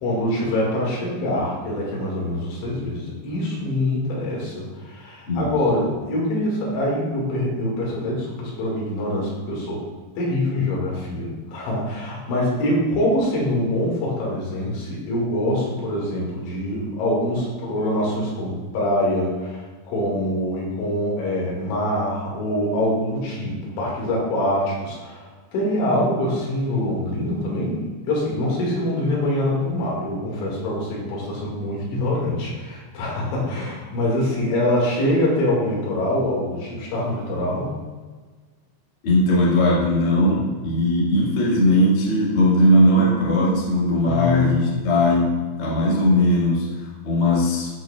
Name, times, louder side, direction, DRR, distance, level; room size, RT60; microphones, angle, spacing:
voice 1, 0.0-9.9 10.2-37.8 44.0-44.7, left 1 dB, 80° left, -4 dB, 4.2 m, -24 dB
voice 2, 39.0-47.7, left 1 dB, 55° left, -6 dB, 1.5 m, -19 dB
13.5 x 4.8 x 2.3 m, 1.4 s
omnidirectional pair, 5.3 m